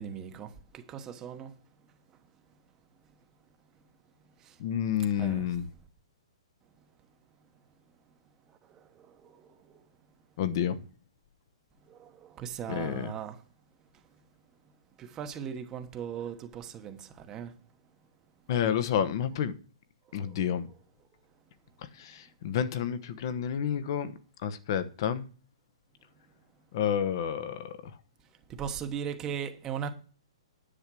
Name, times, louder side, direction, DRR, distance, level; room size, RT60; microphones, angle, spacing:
voice 1, 0.0-1.5 4.4-4.6 5.2-5.6 8.5-9.8 11.9-13.4 15.0-17.5 20.2-20.4 28.5-29.9, right 8 dB, 15° right, 1.0 m, -39 dB
voice 2, 4.6-5.6 10.4-10.8 12.7-13.1 18.5-19.5 20.1-20.7 22.4-24.1 24.4-25.2 26.7-27.7, left 9 dB, 45° left, 1.0 m, -29 dB
10.0 x 7.4 x 6.1 m
hypercardioid pair, 160°, 3 cm